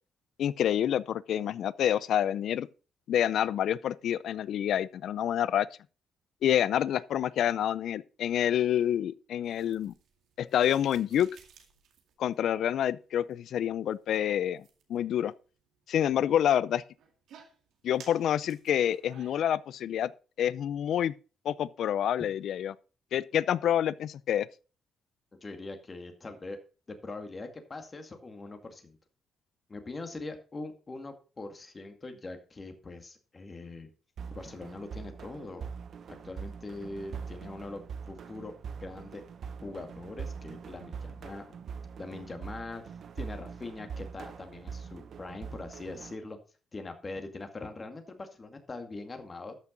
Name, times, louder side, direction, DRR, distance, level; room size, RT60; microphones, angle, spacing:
voice 1, 0.4-2.7 3.1-5.7 6.4-9.9 10.4-11.3 12.2-14.6 14.9-15.3 15.9-16.8 17.8-20.1 20.4-21.1 21.4-22.7 23.1-24.5, left 10 dB, 70° left, 0.5 m, -27 dB
sound 1, 9.4-19.4, right 7 dB, 80° right, 2.1 m, -58 dB
voice 2, 25.4-26.6 26.9-29.0 29.7-33.9 34.3-35.7 36.2-38.5 38.8-41.6 42.0-46.4 46.7-49.6, left 2 dB, 30° left, 2.2 m, -42 dB
sound 2, 34.2-46.2, right 6 dB, 60° right, 0.9 m, -43 dB
13.0 x 6.1 x 4.0 m
cardioid pair, 90°, 0 cm